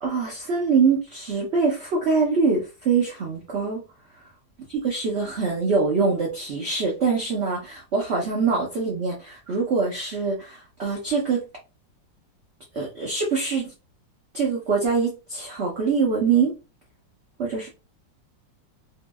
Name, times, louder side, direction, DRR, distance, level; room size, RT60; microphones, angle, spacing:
voice 1, 0.0-3.8 4.7-11.4 12.7-13.7 14.3-16.5 17.4-17.7, right 5 dB, 55° right, 0.7 m, -24 dB
2.8 x 2.7 x 2.2 m
omnidirectional pair, 2.0 m